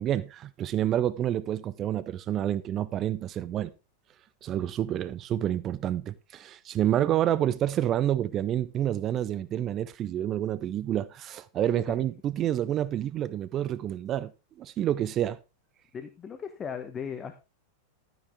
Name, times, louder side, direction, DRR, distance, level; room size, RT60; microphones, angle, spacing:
voice 1, 0.0-3.7 4.4-14.3 14.6-15.4, right 11 dB, 30° right, 0.6 m, -28 dB
voice 2, 15.9-17.4, left 7 dB, 20° left, 1.2 m, -37 dB
12.5 x 9.3 x 3.5 m
figure-of-eight pair, 90°, 0 cm